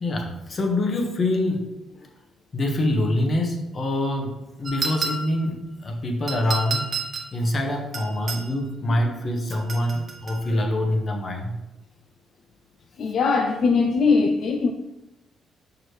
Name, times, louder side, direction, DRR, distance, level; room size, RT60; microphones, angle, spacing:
voice 1, 0.0-1.7 2.5-6.9 7.3-11.5, left 1 dB, 40° left, 3 dB, 1.1 m, -25 dB
sound 1, 4.7-5.5 6.3-7.3 7.9-8.5 9.5-10.4, right 3 dB, 40° right, 1.1 m, -30 dB
voice 2, 13.0-14.7, left 4 dB, 60° left, 4 dB, 0.4 m, -21 dB
6.0 x 4.9 x 3.2 m, 0.94 s
cardioid pair, 90°, 0 cm